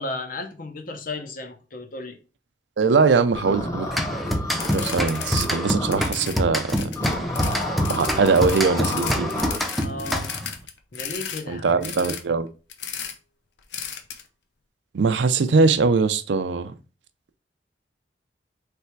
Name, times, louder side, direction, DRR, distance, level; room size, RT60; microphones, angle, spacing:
voice 1, 0.0-2.2 9.8-10.3 10.9-11.7, left 2 dB, 50° left, 0.8 m, -34 dB
voice 2, 2.8-3.9 4.7-6.9 7.9-9.3 11.5-12.5 14.9-16.7, right 4 dB, 85° right, 0.5 m, -21 dB
sound 1, 3.3-6.1 7.0-9.6, left 1 dB, 20° left, 1.0 m, -30 dB
sound 2, 3.9-10.6, equal, ahead, 0.5 m, -27 dB
sound 3, 4.5-5.5 5.8-11.4 11.8-12.2 12.7-13.1 13.7-14.2, left 7 dB, 85° left, 0.7 m, -34 dB
3.4 x 3.2 x 4.5 m
head